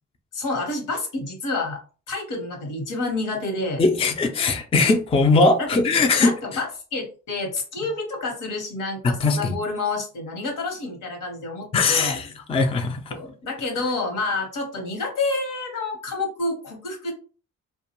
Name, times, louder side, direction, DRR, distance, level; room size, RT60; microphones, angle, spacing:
voice 1, 0.3-1.8 2.1-3.8 5.6-5.8 6.2-12.2 13.1-17.1, left 3 dB, 70° left, 1.1 m, -29 dB
voice 2, 3.8-6.3 9.0-9.6 11.7-13.1, left 3 dB, 20° left, 0.4 m, -20 dB
2.4 x 2.2 x 2.9 m
cardioid pair, 75°, 33 cm